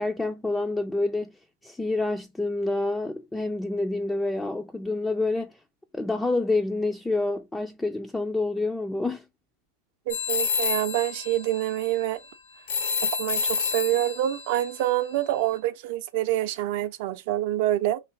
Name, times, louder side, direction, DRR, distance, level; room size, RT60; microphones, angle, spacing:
voice 1, 0.0-1.3 1.6-5.6 5.9-9.2, left 2 dB, 10° left, 0.4 m, -27 dB
sound 1, 10.1-15.6, left 5 dB, 75° left, 1.0 m, -30 dB
voice 2, 10.1-12.2 13.0-18.0, right 14 dB, 60° right, 0.6 m, -26 dB
3.2 x 2.5 x 4.0 m
hypercardioid pair, 100°, 0 cm